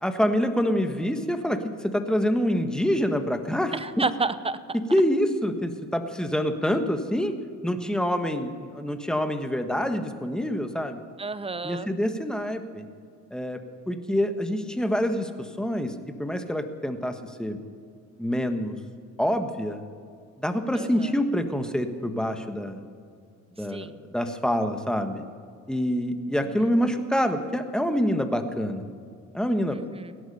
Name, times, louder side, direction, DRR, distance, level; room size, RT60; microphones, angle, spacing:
voice 1, 0.0-4.0 4.7-7.4 7.6-11.0 11.6-12.9 13.3-17.6 18.2-18.8 19.2-19.8 20.4-22.8 23.6-25.2 25.7-28.9 29.3-29.8, equal, ahead, 7 dB, 1.4 m, -26 dB
voice 2, 3.7-4.6 11.2-11.9 20.7-21.1 23.7-24.0 26.4-26.7 29.7-30.2, right 3 dB, 20° right, 14 dB, 0.7 m, -31 dB
17.0 x 11.5 x 5.5 m, 2.3 s
cardioid pair, 90°, 30 cm